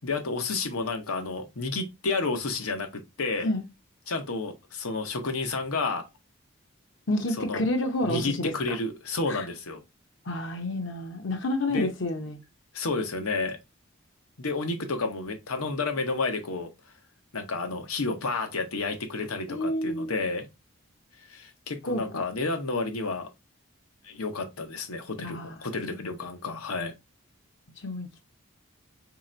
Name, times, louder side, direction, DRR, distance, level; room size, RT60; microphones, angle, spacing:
voice 1, 0.0-3.5 4.1-6.1 7.4-7.6 8.0-9.8 11.7-11.9 12.7-13.6 14.4-16.7 17.3-20.5 21.3-23.3 24.0-26.9, left 3 dB, 90° left, 0.9 m, -31 dB
voice 2, 7.1-8.8 9.3-9.5 10.3-12.4 19.5-20.1 21.9-22.2 25.2-26.2 26.5-26.6 27.8-28.2, left 1 dB, 60° left, 0.7 m, -30 dB
3.2 x 2.9 x 3.8 m
head